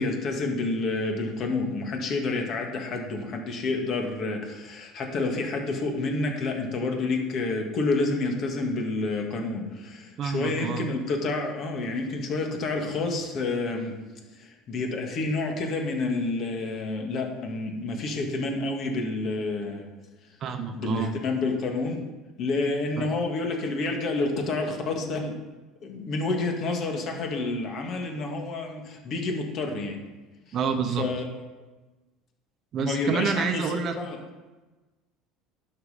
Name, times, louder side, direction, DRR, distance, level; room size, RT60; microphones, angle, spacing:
voice 1, 0.0-14.0 14.4-19.9 20.7-22.0 22.4-25.4 25.8-30.0 31.0-31.2 32.8-34.2, left 3 dB, 45° left, 2 dB, 1.9 m, -29 dB
voice 2, 10.2-10.9 20.4-21.1 23.0-23.1 30.5-31.1 32.7-34.0, right 6 dB, 45° right, 7 dB, 0.9 m, -28 dB
11.0 x 5.7 x 5.1 m, 1.2 s
supercardioid pair, 125°, 0 cm